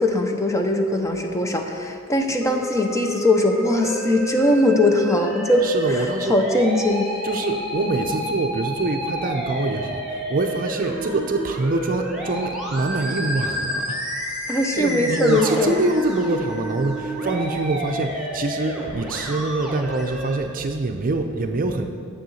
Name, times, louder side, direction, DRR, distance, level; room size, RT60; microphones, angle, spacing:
voice 1, 0.0-7.1 14.5-15.8, left 1 dB, 15° left, 3 dB, 0.7 m, -20 dB
Musical instrument, 2.4-20.4, equal, ahead, 1.5 m, -30 dB
voice 2, 5.6-6.5 7.2-14.0 14.5-21.9, right 2 dB, 40° right, 5 dB, 0.6 m, -25 dB
7.6 x 6.8 x 6.3 m, 2.1 s
head